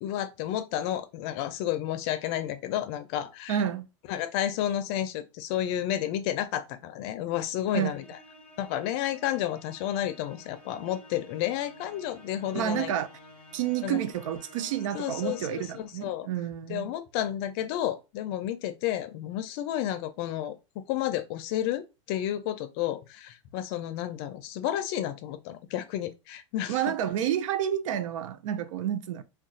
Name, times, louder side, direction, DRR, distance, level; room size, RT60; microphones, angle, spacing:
voice 1, 0.0-3.6 4.1-8.2 8.6-12.9 13.8-14.0 14.9-16.3 16.7-20.5 20.9-26.9, left 11 dB, 50° left, 0.5 m, -31 dB
voice 2, 3.5-3.9 7.7-7.9 12.5-13.1 13.5-16.9 26.7-29.2, right 10 dB, 75° right, 0.5 m, -29 dB
Musical instrument, 7.5-16.0, equal, 5° left, 1.1 m, -52 dB
2.4 x 2.3 x 3.9 m
supercardioid pair, 130°, 16 cm